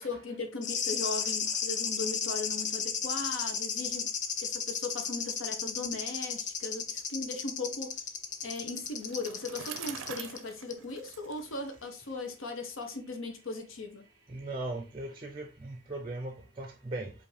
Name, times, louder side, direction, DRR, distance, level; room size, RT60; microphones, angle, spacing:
voice 1, 0.0-4.1 4.4-7.9 8.4-14.1, left 3 dB, 80° left, 0.8 m, -38 dB
sound 1, 0.6-10.4 10.7-10.8, left 7 dB, 35° left, 0.4 m, -34 dB
Bicycle, 8.4-12.2, right 8 dB, 85° right, 0.5 m, -45 dB
voice 2, 14.3-17.1, right 2 dB, 25° right, 0.4 m, -38 dB
4.9 x 2.6 x 3.2 m
head